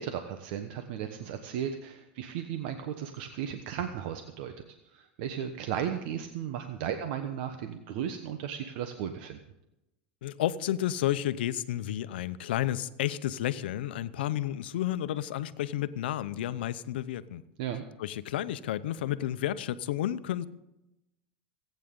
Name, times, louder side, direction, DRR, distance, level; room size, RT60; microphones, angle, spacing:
voice 1, 0.0-4.5 4.8-9.4 17.6-17.8, right 9 dB, 70° right, 7 dB, 1.1 m, -35 dB
voice 2, 10.2-17.4 18.0-20.5, left 12 dB, 80° left, 14 dB, 0.8 m, -31 dB
26.5 x 9.3 x 3.8 m, 0.92 s
hypercardioid pair, 100°, 5 cm